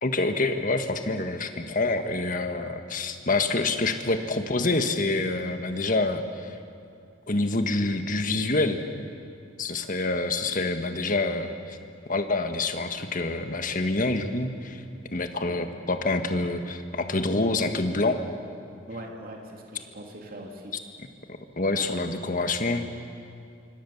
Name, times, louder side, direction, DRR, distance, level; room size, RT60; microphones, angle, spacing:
voice 1, 0.0-6.5 7.3-8.8 9.6-11.8 12.1-14.8 15.1-18.2 21.3-22.8, left 2 dB, 45° left, 7 dB, 1.7 m, -27 dB
voice 2, 18.9-20.7 21.7-22.1, right 1 dB, 50° right, 1 dB, 2.9 m, -41 dB
26.0 x 25.0 x 7.3 m, 2.4 s
head